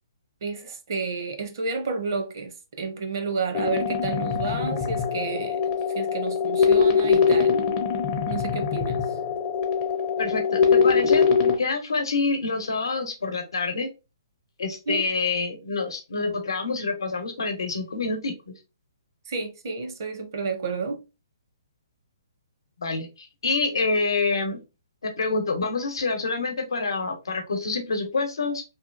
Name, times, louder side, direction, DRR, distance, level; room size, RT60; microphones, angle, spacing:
voice 1, 0.4-7.6 8.3-9.0 14.9-15.0 19.3-21.0, right 4 dB, 55° right, 0.7 m, -31 dB
sound 1, 3.5-11.5, left 6 dB, 30° left, 0.5 m, -22 dB
voice 2, 10.2-11.2 11.6-13.9 14.6-18.5 22.8-24.6 25.0-28.6, left 3 dB, 85° left, 0.8 m, -27 dB
2.8 x 2.3 x 2.4 m
hypercardioid pair, 155°, 2 cm